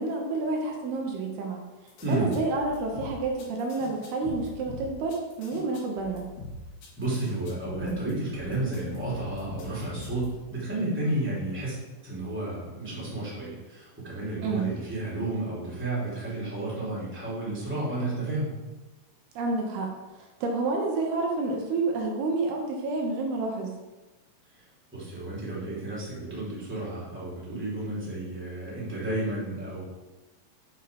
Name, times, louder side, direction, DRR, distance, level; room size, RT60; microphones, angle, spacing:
voice 1, 0.0-1.6 2.1-6.2 14.4-14.7 19.4-19.9 20.4-23.7, right 3 dB, 75° right, 1 dB, 3.0 m, -29 dB
sound 1, 1.9-10.5, left 2 dB, 75° left, 3.5 m, -42 dB
voice 2, 2.0-2.4 7.0-11.8 12.0-18.5 24.5-24.6 24.9-29.8, right 2 dB, 5° right, -7 dB, 2.7 m, -32 dB
8.0 x 6.2 x 5.3 m, 1.1 s
omnidirectional pair, 4.6 m